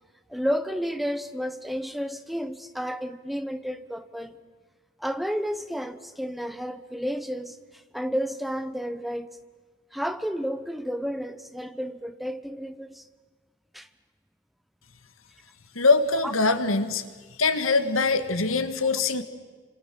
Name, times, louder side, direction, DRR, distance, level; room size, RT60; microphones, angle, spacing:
voice 1, 0.3-4.4 5.0-9.3 9.9-13.1 13.7-13.9 16.2-16.3, equal, ahead, 10 dB, 1.0 m, -31 dB
voice 2, 15.8-17.0 17.4-19.2, left 3 dB, 90° left, 11 dB, 1.8 m, -23 dB
27.0 x 26.0 x 7.6 m, 1.5 s
head